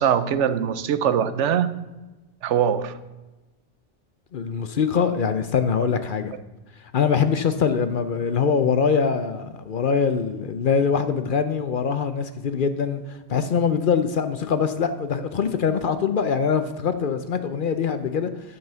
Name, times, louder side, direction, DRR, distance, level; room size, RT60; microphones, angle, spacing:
voice 1, 0.0-1.8 2.4-3.0, right 8 dB, 75° right, 13 dB, 1.0 m, -22 dB
voice 2, 4.3-6.3 6.9-18.3, left 6 dB, 55° left, 10 dB, 0.7 m, -23 dB
10.5 x 5.6 x 6.7 m, 1.1 s
omnidirectional pair, 1.2 m